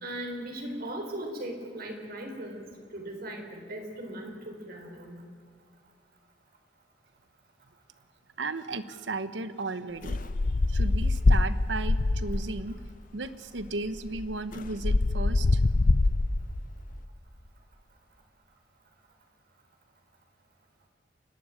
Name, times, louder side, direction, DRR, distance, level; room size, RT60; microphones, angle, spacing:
voice 1, 0.0-2.6 2.9-5.1, right 1 dB, 55° right, 2 dB, 4.1 m, -38 dB
voice 2, 8.4-10.2 10.7-12.8 13.1-15.6, right 3 dB, 85° right, 13 dB, 1.1 m, -35 dB
sound 1, 10.0-12.6 13.6-13.7 14.0-16.6, left 2 dB, 50° left, 0.6 m, -24 dB
29.0 x 12.5 x 9.1 m, 2.1 s
head